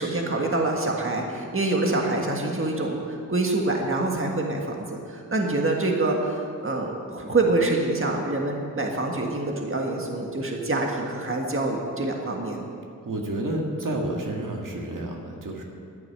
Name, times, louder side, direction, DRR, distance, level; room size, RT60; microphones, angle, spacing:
voice 1, 0.0-4.8 5.1-12.6, right 2 dB, 40° right, 1 dB, 1.7 m, -26 dB
voice 2, 13.0-15.6, right 1 dB, 75° right, 0 dB, 1.9 m, -30 dB
11.0 x 8.9 x 9.8 m, 2.4 s
wide cardioid pair, 85°, 32 cm